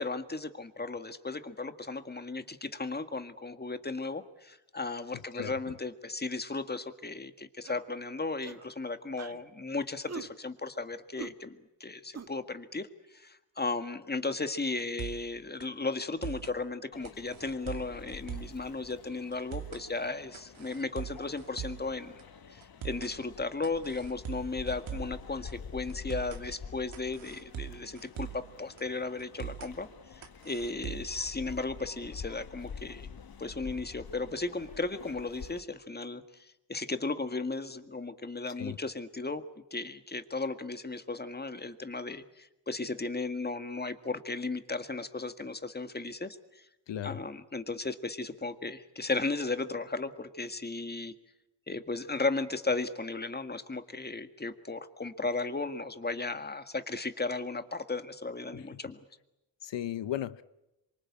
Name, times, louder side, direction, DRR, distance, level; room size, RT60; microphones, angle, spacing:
voice 1, 0.0-22.2 22.5-33.1 33.4-46.7 47.0-51.1 51.7-59.0, left 3 dB, 20° left, 1.8 m, -35 dB
sound 1, 7.6-7.9 8.4-8.7 9.2-9.4 10.1-10.3 11.2-11.3 12.1-12.3, right 5 dB, 35° right, 1.5 m, -42 dB
sound 2, 14.8-15.3 15.6-15.7 16.0-16.6 17.0-18.6 18.9-19.0 19.3-19.9 20.3-21.9 22.2-22.3 22.6-23.1 23.6-25.2 25.5-25.6 25.9-26.4 26.9-28.5 28.8-28.9 29.2-29.7 30.2-31.2, right 10 dB, 80° right, 2.8 m, -41 dB
sound 3, 16.9-35.6, left 6 dB, 50° left, 1.6 m, -48 dB
voice 2, 46.9-47.2 58.5-58.8 59.6-60.4, left 11 dB, 65° left, 0.9 m, -36 dB
27.0 x 24.0 x 8.6 m
cardioid pair, 85°, 47 cm